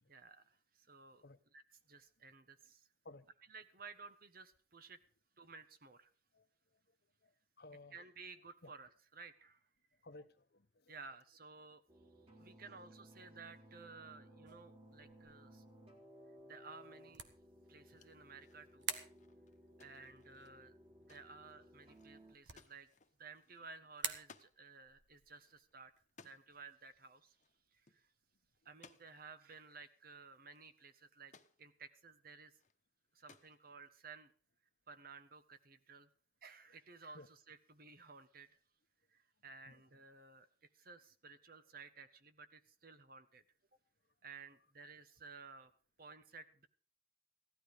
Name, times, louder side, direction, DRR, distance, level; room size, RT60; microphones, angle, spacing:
voice 1, 0.1-1.2 1.5-2.9 3.5-5.0 5.4-6.1 7.9-9.7 10.9-11.8 12.4-15.6 16.4-17.2 17.7-18.9 19.8-20.7 21.1-22.9 23.2-25.9 26.2-27.4 27.7-28.1 28.6-31.3 31.6-32.6 33.1-34.3 34.9-36.1 36.4-38.5 39.1-40.5 40.7-43.4 44.2-45.7 46.0-46.7, right 4 dB, 55° right, 1.4 m, -56 dB
voice 2, 7.6-8.0 8.6-8.7 10.0-11.0 12.6-12.7 37.1-37.3 39.7-39.8, left 2 dB, 60° left, 1.1 m, -57 dB
sound 1, 11.9-22.3, equal, 35° right, 3.8 m, -60 dB
sound 2, 14.5-28.6, right 7 dB, 80° right, 1.8 m, -52 dB
sound 3, 17.8-24.6 24.9-25.0 25.3-26.6 27.3-27.6 27.9-28.0 28.6-29.4 30.1-30.2 30.5-31.6 32.4-32.8 33.1-33.9, left 4 dB, 40° left, 1.2 m, -65 dB
16.5 x 12.5 x 5.1 m
head